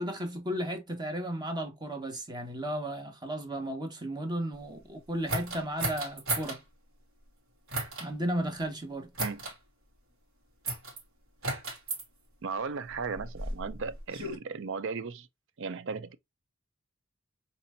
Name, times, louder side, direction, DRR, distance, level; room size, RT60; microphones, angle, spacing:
voice 1, 0.0-6.6 8.0-9.1, right 1 dB, 20° right, 1.4 m, -34 dB
sound 1, 5.3-6.6 7.7-8.1 9.2-9.6 10.7-11.0 11.4-12.0 12.9-14.4, right 2 dB, 85° right, 2.8 m, -34 dB
voice 2, 12.4-15.3 15.6-16.2, right 5 dB, 65° right, 0.6 m, -36 dB
4.3 x 4.2 x 2.6 m
head